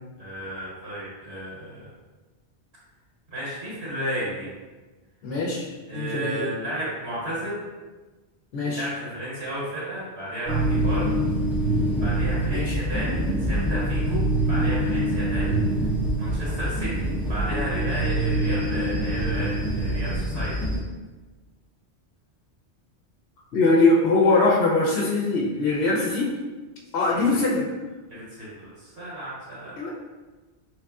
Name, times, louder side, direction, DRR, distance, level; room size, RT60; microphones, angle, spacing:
voice 1, 0.2-1.9 3.3-4.5 5.9-7.6 8.8-11.1 12.0-15.5 16.2-20.6 27.1-27.4 28.1-29.7, right 1 dB, 70° right, -7 dB, 1.7 m, -33 dB
voice 2, 5.2-6.4 8.5-8.9 12.5-12.7 23.5-26.4 26.9-27.7 29.8-29.9, left 3 dB, 70° left, -3 dB, 0.8 m, -22 dB
sound 1, 10.5-20.8, right 1 dB, ahead, 0.4 m, -25 dB
3.5 x 3.1 x 2.3 m, 1.3 s
omnidirectional pair, 1.1 m